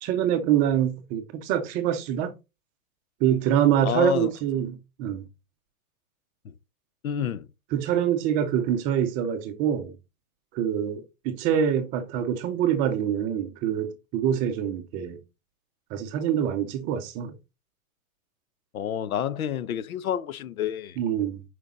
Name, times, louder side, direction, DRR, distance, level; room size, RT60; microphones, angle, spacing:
voice 1, 0.0-2.3 3.2-5.2 7.7-9.9 10.5-15.2 15.9-17.3 21.0-21.4, right 9 dB, 20° right, 0.6 m, -25 dB
voice 2, 3.8-4.3 6.4-6.5 7.0-7.5 18.7-21.0, left 9 dB, 80° left, 0.8 m, -28 dB
6.8 x 5.2 x 3.7 m
hypercardioid pair, 145°, 42 cm